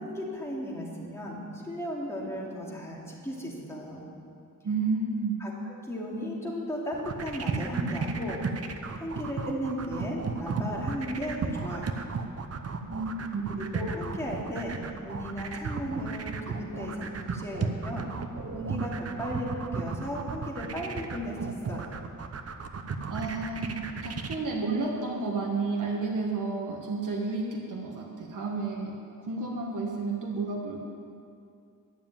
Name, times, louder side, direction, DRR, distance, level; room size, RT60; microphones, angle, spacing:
voice 1, 0.0-4.1 5.4-8.4 8.9-12.0 13.6-18.1 18.5-22.0, equal, 10° left, -4 dB, 2.4 m, -35 dB
voice 2, 4.6-5.4 12.9-13.6 23.1-28.9 29.2-30.9, right 3 dB, 65° right, -1 dB, 1.4 m, -31 dB
sound 1, 6.9-24.4, right 5 dB, 45° right, 0.8 m, -34 dB
11.5 x 7.2 x 8.9 m, 2.5 s
wide cardioid pair, 120°, 33 cm